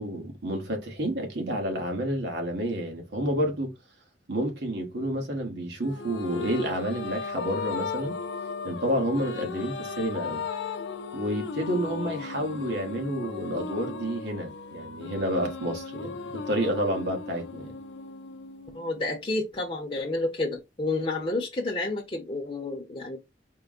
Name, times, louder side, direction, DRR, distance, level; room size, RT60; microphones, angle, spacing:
voice 1, 0.0-3.7 4.3-8.2 8.6-10.4 11.1-17.7, right 1 dB, 75° right, 1.2 m, -29 dB
sound 1, 5.8-19.4, left 5 dB, 90° left, 0.5 m, -36 dB
voice 2, 18.7-23.2, left 2 dB, 30° left, 0.7 m, -30 dB
4.4 x 2.1 x 3.7 m
head